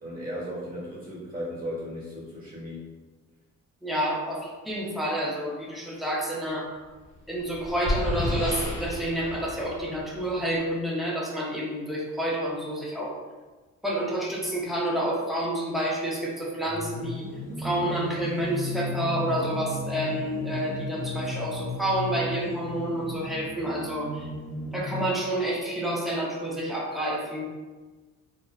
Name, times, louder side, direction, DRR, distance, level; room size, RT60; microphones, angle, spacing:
voice 1, 0.0-2.9, equal, 30° right, -7 dB, 1.2 m, -36 dB
voice 2, 3.8-6.7 7.3-13.1 13.8-17.3 17.6-24.3 24.7-27.5, right 1 dB, ahead, -4 dB, 0.5 m, -29 dB
sound 1, 7.0-10.7, left 1 dB, 45° left, 0.7 m, -32 dB
sound 2, 16.7-25.0, left 2 dB, 85° left, 1.0 m, -35 dB
2.6 x 2.1 x 2.3 m, 1.3 s
cardioid pair, 90°, 30 cm